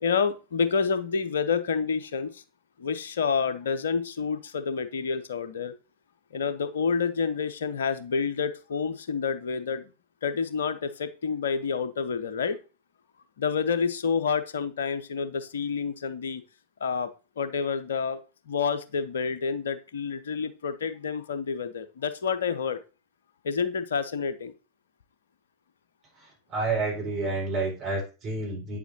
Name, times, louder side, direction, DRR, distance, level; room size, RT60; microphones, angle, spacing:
voice 1, 0.0-2.4 2.8-5.7 6.3-9.8 10.2-12.6 13.4-16.4 16.8-17.1 17.4-18.2 18.5-22.8 23.4-24.5, left 5 dB, 65° left, 13 dB, 0.7 m, -28 dB
voice 2, 26.1-28.8, right 3 dB, 35° right, -2 dB, 4.7 m, -30 dB
9.0 x 7.2 x 2.8 m, 0.33 s
figure-of-eight pair, 90°, 0 cm